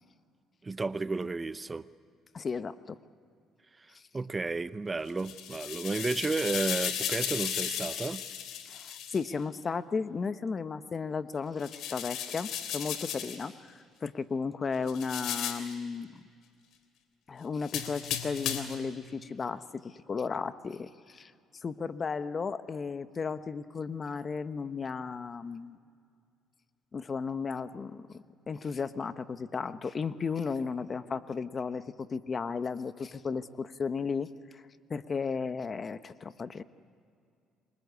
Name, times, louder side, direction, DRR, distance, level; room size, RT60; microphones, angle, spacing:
voice 1, 0.6-1.8 3.8-8.2, right 3 dB, 25° right, 0.7 m, -32 dB
voice 2, 2.3-3.0 3.9-4.0 8.7-13.7 14.0-16.1 17.3-25.8 26.9-34.6 34.9-36.6, left 5 dB, 35° left, 1.1 m, -34 dB
sound 1, 5.1-9.2 11.6-13.4 14.9-15.7 17.6-18.8, left 9 dB, 75° left, 3.1 m, -35 dB
28.0 x 24.0 x 8.3 m
supercardioid pair, 85°, 0 cm